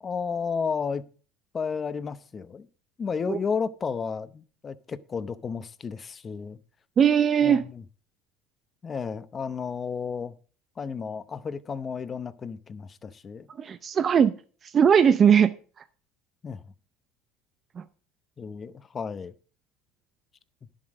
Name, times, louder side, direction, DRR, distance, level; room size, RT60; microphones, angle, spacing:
voice 1, 0.0-1.0 1.5-2.7 3.0-6.6 7.4-7.8 8.8-10.3 10.8-13.5 16.4-16.6 18.4-19.3, left 6 dB, 25° left, 0.8 m, -32 dB
voice 2, 7.0-7.6 13.6-14.3 14.6-15.5 17.8-17.9, right 8 dB, 35° right, 0.6 m, -19 dB
11.0 x 7.5 x 5.0 m
cardioid pair, 125°, 0 cm